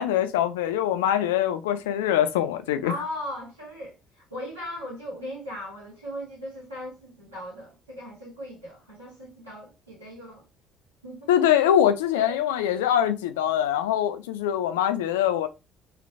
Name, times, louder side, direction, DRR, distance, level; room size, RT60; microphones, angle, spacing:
voice 1, 0.0-2.9 11.3-15.5, left 10 dB, 75° left, 0.3 m, -23 dB
voice 2, 2.8-10.4 11.0-11.3 12.1-12.4, equal, 90° right, 1.6 m, -38 dB
3.2 x 3.1 x 2.4 m
figure-of-eight pair, 50°, 0 cm